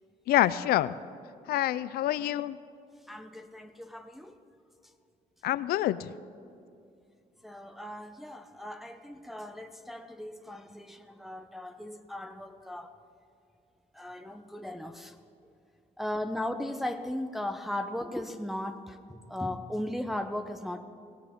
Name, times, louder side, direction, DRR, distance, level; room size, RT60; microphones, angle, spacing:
voice 1, 0.3-1.0 1.5-2.6 5.4-6.1, left 13 dB, 80° left, 16 dB, 0.5 m, -26 dB
voice 2, 3.1-4.4 7.4-12.9 13.9-15.2 16.0-20.9, left 1 dB, ahead, 6 dB, 0.8 m, -37 dB
18.0 x 17.5 x 3.7 m, 2.6 s
cardioid pair, 85°, 16 cm